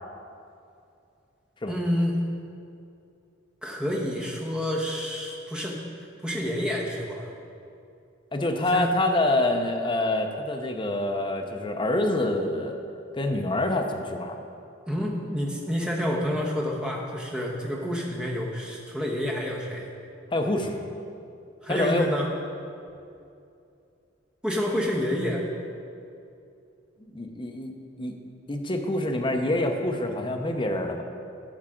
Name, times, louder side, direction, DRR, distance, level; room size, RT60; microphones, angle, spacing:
voice 1, 1.7-2.2 3.6-5.8 6.2-7.3 8.6-8.9 14.9-19.9 21.6-22.3 24.4-25.4, equal, 5° right, -2 dB, 1.1 m, -28 dB
voice 2, 8.3-12.7 13.1-14.4 20.3-20.8 21.7-22.0 27.0-27.7 28.0-28.1 28.5-31.0, left 1 dB, 25° left, 3 dB, 0.7 m, -26 dB
12.0 x 7.3 x 3.7 m, 2.6 s
head